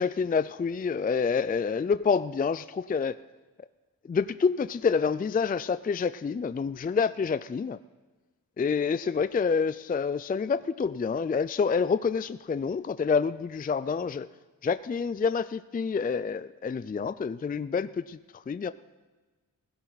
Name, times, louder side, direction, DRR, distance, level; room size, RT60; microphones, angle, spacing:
voice 1, 0.0-3.2 4.1-7.8 8.6-14.3 14.6-18.2 18.5-18.7, left 5 dB, 25° left, 14 dB, 0.4 m, -27 dB
16.0 x 16.0 x 4.0 m, 1.3 s
cardioid pair, 70°, 35 cm